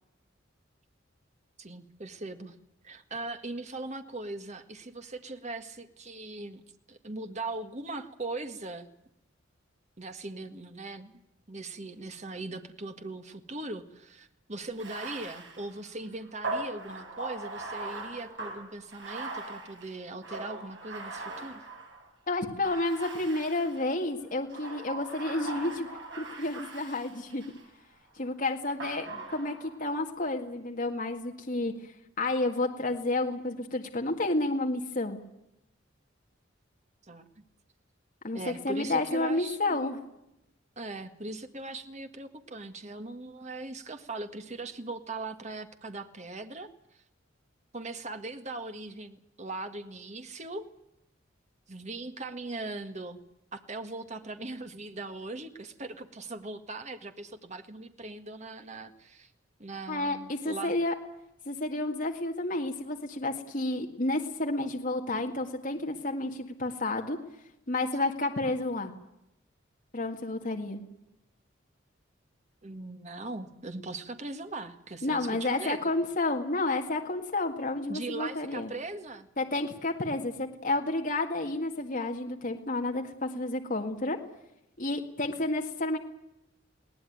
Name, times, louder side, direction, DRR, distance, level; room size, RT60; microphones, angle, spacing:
voice 1, 1.6-2.5 2.8-6.6 6.9-8.9 10.0-11.1 11.5-21.6 37.0-37.3 38.3-39.8 40.7-47.0 47.7-50.7 51.7-53.2 53.5-59.3 59.6-60.8 72.6-75.9 77.9-79.3, right 2 dB, 35° right, 7 dB, 1.8 m, -40 dB
Bathtub (filling or washing), 14.7-22.1 22.6-23.9 24.5-27.7 28.8-29.8, right 3 dB, 65° right, 8.0 m, -40 dB
voice 2, 22.3-25.9 26.2-27.4 28.2-31.7 32.2-35.2 38.2-40.0 59.9-60.9 61.5-67.2 67.7-68.9 69.9-70.8 75.0-78.7 79.4-84.2 84.8-86.0, left 2 dB, 45° left, 3 dB, 1.9 m, -30 dB
21.0 x 18.0 x 9.4 m, 0.85 s
head